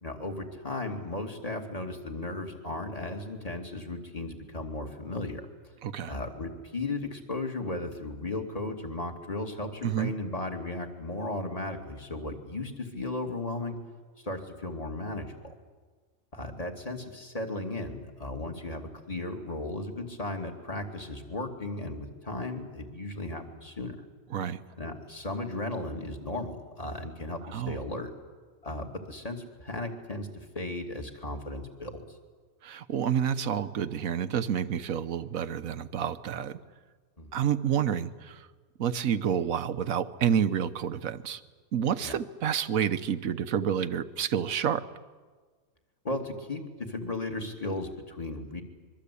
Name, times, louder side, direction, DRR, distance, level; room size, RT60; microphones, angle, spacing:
voice 1, 0.0-5.4 6.0-13.8 14.2-15.5 16.3-24.0 24.8-28.1 28.6-32.0 37.2-37.4 42.0-42.1 46.0-48.6, left 2 dB, 25° left, 4 dB, 2.6 m, -35 dB
voice 2, 5.8-6.1 9.8-10.1 24.3-24.6 27.5-27.8 32.6-36.6 37.3-38.5 38.8-41.4 41.7-44.9, right 8 dB, 75° right, 13 dB, 1.4 m, -29 dB
25.0 x 23.5 x 8.5 m, 1.4 s
omnidirectional pair, 1.4 m